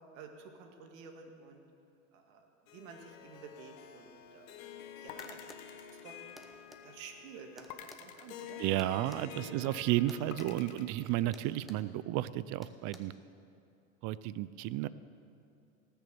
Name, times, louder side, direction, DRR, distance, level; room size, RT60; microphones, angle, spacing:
voice 1, 0.1-1.6 2.1-4.6 5.0-5.4 5.7-6.2 6.8-7.7 8.0-8.6 9.4-9.8, right 5 dB, 70° right, 4 dB, 1.9 m, -51 dB
Harp, 2.7-11.1, left 9 dB, 75° left, 1.2 m, -50 dB
sound 1, 5.1-6.8 7.7-9.3 10.3-11.3, left 9 dB, 45° left, 1.1 m, -50 dB
sound 2, 5.2-5.7 6.4-6.8 7.6-9.3 10.1-10.5 10.8-11.0 11.3-11.9 12.6-13.0, equal, ahead, 1.0 m, -54 dB
voice 2, 8.6-13.1 14.0-14.9, right 15 dB, 45° right, 17 dB, 0.5 m, -32 dB
18.5 x 7.0 x 6.8 m, 2.6 s
hypercardioid pair, 95°, 42 cm